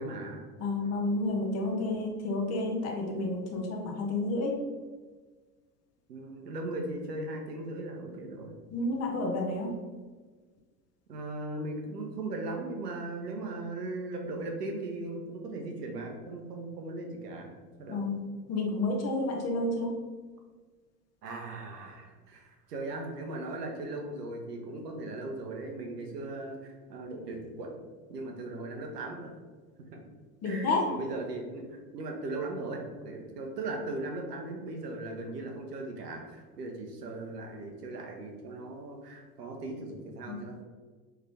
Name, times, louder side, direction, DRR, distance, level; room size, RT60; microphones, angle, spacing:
voice 1, 0.0-0.4 6.1-8.5 11.1-17.5 17.8-18.0 21.2-27.8 28.1-29.3 29.9-30.0 30.4-40.6, right 2 dB, 75° right, 2 dB, 0.9 m, -38 dB
voice 2, 0.6-4.5 8.7-9.7 17.9-18.2 18.5-19.9 30.4-30.8 40.3-40.4, left 2 dB, 30° left, 1 dB, 0.9 m, -30 dB
3.7 x 3.5 x 3.4 m, 1.4 s
figure-of-eight pair, 80°, 48 cm